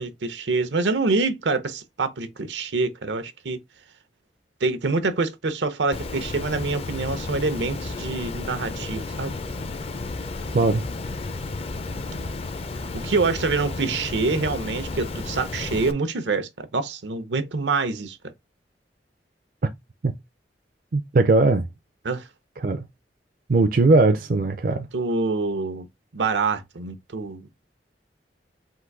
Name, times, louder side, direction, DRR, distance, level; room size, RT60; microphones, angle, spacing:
voice 1, 0.0-3.6 4.6-9.3 12.9-18.2 22.0-22.3 24.6-25.9 26.1-27.5, right 3 dB, 85° right, 0.7 m, -26 dB
Water, 5.9-15.9, left 3 dB, 35° left, 0.4 m, -32 dB
voice 2, 20.9-21.7 22.6-22.9 23.5-24.9, right 3 dB, 50° right, 0.4 m, -19 dB
3.8 x 2.6 x 4.6 m
head